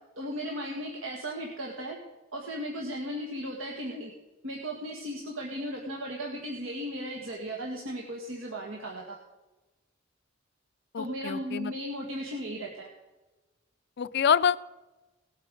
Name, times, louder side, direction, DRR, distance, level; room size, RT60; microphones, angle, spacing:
voice 1, 0.2-2.0 2.3-4.1 4.4-9.2 11.0-12.9, equal, 80° right, -1 dB, 1.9 m, -36 dB
voice 2, 10.9-11.7 14.0-14.6, left 7 dB, 55° left, 17 dB, 0.4 m, -26 dB
18.5 x 8.3 x 5.2 m, 1.1 s
head